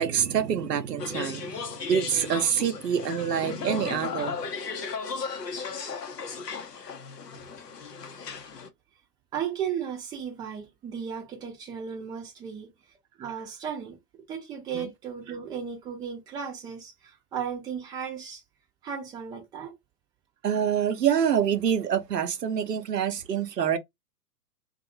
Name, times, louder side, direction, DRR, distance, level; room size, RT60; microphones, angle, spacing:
voice 1, 0.0-4.3 14.7-14.9 20.4-23.8, right 8 dB, 85° right, 0.6 m, -26 dB
sound 1, 1.0-8.7, left 5 dB, 80° left, 0.8 m, -35 dB
voice 2, 9.3-12.7 13.2-14.0 14.3-18.4 18.8-19.7, right 7 dB, 10° right, 0.5 m, -35 dB
2.6 x 2.3 x 2.7 m
figure-of-eight pair, 110°, 47 cm